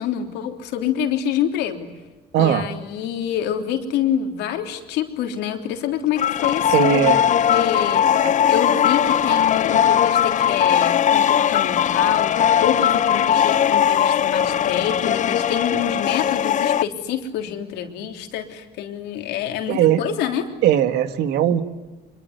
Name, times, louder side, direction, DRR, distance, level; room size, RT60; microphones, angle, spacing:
voice 1, 0.0-1.9 2.4-7.2 7.5-20.5, left 9 dB, 90° left, 5 dB, 3.3 m, -27 dB
voice 2, 2.3-2.7 6.7-7.2 8.2-8.3 19.7-20.0 20.6-21.6, right 11 dB, 80° right, 10 dB, 1.9 m, -18 dB
sound 1, 6.2-16.8, left 9 dB, 45° left, 0.8 m, -19 dB
25.5 x 23.0 x 9.6 m, 1.2 s
cardioid pair, 110°, 17 cm